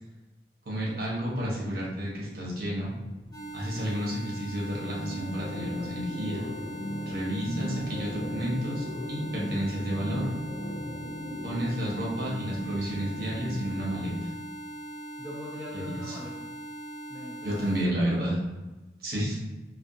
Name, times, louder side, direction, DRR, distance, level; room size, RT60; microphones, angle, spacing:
voice 1, 0.7-2.9 3.5-6.4 7.1-10.3 11.4-14.3 15.7-16.2 17.4-18.4 19.0-19.4, equal, 55° right, -5 dB, 0.8 m, -31 dB
sound 1, 2.6-14.3, equal, 90° left, 0.5 m, -38 dB
sound 2, 3.3-17.8, right 2 dB, 25° left, 0.9 m, -41 dB
voice 2, 15.2-16.5 17.1-18.2, equal, 5° right, -6 dB, 0.3 m, -42 dB
2.5 x 2.1 x 2.6 m, 1.1 s
head